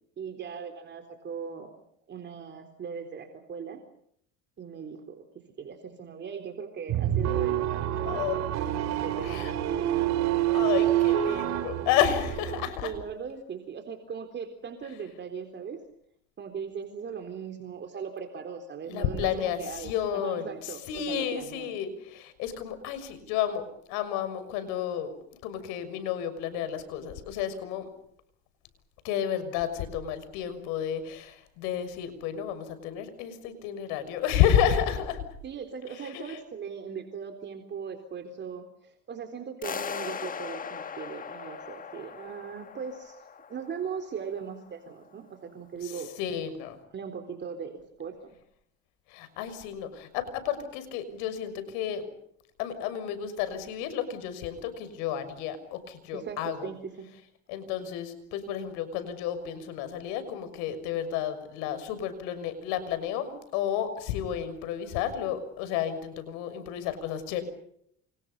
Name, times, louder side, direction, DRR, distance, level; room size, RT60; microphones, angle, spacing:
voice 1, 0.2-1.7 2.1-3.8 4.6-8.4 9.0-9.9 12.8-15.8 16.4-21.7 35.4-43.2 43.5-46.1 46.9-48.4 56.1-57.1, right 6 dB, 35° right, 6 dB, 3.8 m, -39 dB
sound 1, 6.9-12.7, right 12 dB, 60° right, 3.6 m, -27 dB
voice 2, 8.0-8.4 9.2-9.5 10.5-12.9 18.9-25.1 25.4-27.9 29.0-35.2 36.0-36.4 45.8-45.9 46.2-46.8 49.1-52.0 52.6-56.7 57.5-67.4, left 9 dB, 85° left, 11 dB, 6.3 m, -31 dB
sound 2, 39.6-44.6, left 7 dB, 30° left, 1.5 m, -39 dB
29.5 x 28.5 x 5.5 m, 0.70 s
cardioid pair, 120°, 30 cm